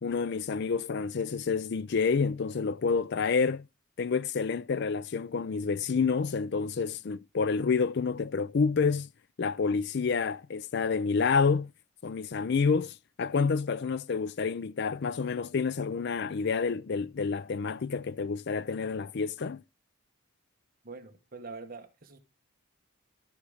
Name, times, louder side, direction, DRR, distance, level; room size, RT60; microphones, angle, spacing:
voice 1, 0.0-3.7 4.0-9.1 9.4-11.7 12.0-19.6, left 5 dB, 50° left, 0.4 m, -28 dB
voice 2, 20.8-22.2, right 4 dB, 40° right, 1.3 m, -44 dB
13.0 x 5.0 x 4.9 m
head